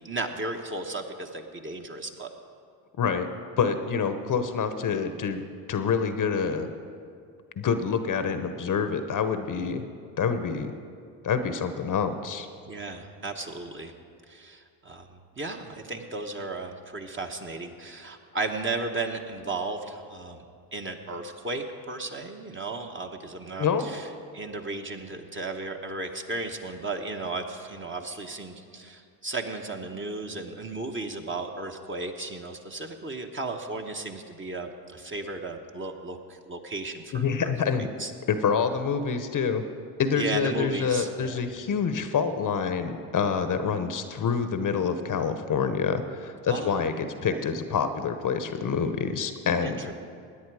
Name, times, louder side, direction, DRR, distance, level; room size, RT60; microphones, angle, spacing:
voice 1, 0.0-2.3 12.7-13.9 14.3-20.4 20.7-24.1 24.3-38.1 40.1-41.4 46.5-46.8 47.3-47.4 49.6-49.9, right 3 dB, 25° right, 3 dB, 1.3 m, -35 dB
voice 2, 3.6-5.4 5.7-6.7 7.6-9.8 10.2-10.7 11.2-12.5 23.6-23.9 37.1-37.9 38.3-39.6 40.0-49.9, left 6 dB, 40° left, 9 dB, 1.0 m, -27 dB
17.0 x 10.0 x 4.9 m, 2.3 s
hypercardioid pair, 75°, 50 cm